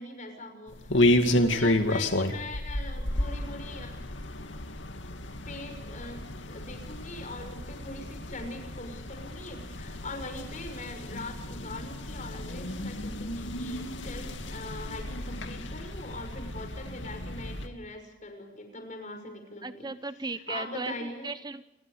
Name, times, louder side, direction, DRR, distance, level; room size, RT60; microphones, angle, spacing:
voice 1, 0.0-3.9 5.5-6.2 6.5-19.9 20.3-21.3, left 2 dB, 40° left, 5 dB, 6.3 m, -42 dB
sound 1, 0.7-17.7, left 1 dB, 75° left, 2.4 m, -31 dB
voice 2, 19.6-21.6, right 3 dB, 20° right, 12 dB, 0.7 m, -36 dB
29.0 x 22.0 x 5.0 m, 0.95 s
head